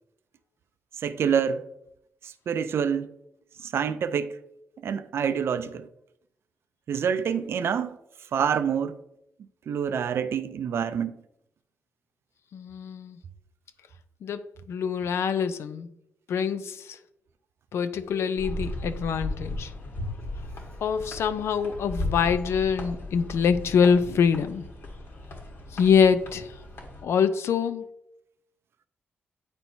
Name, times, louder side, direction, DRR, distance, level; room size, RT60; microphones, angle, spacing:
voice 1, 1.0-1.7 2.2-3.1 3.6-4.4 4.8-5.9 6.9-8.0 8.3-9.0 9.7-11.1, right 7 dB, 70° right, 0.4 m, -27 dB
voice 2, 12.5-13.2 14.2-15.9 16.3-17.0 17.7-19.7 20.8-24.6 25.7-26.6 27.0-27.9, left 6 dB, 80° left, 0.5 m, -25 dB
sound 1, 18.4-27.0, left 1 dB, 65° left, 1.5 m, -36 dB
8.6 x 4.4 x 2.7 m
cardioid pair, 95°, 4 cm